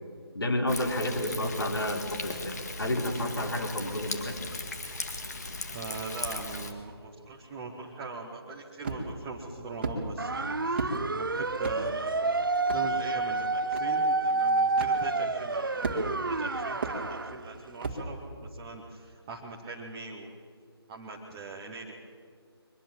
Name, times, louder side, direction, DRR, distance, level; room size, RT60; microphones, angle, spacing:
voice 1, 0.3-2.5 2.8-4.3, left 1 dB, 60° left, 3 dB, 4.0 m, -30 dB
Thunder, 0.7-6.7, left 3 dB, 40° left, 2.2 m, -38 dB
voice 2, 5.7-20.3 20.9-22.0, right 3 dB, 10° right, -1 dB, 0.9 m, -41 dB
sound 1, 8.8-9.2 9.8-10.0 10.8-11.0 11.6-11.8 12.7-12.8 13.7-13.8 14.8-14.9 15.8-16.2 16.8-17.0 17.8-18.0, right 3 dB, 25° right, 2.2 m, -33 dB
sound 2, 10.2-17.4, right 3 dB, 50° right, 0.9 m, -29 dB
23.5 x 21.0 x 7.4 m, 2.1 s
figure-of-eight pair, 160°, 14 cm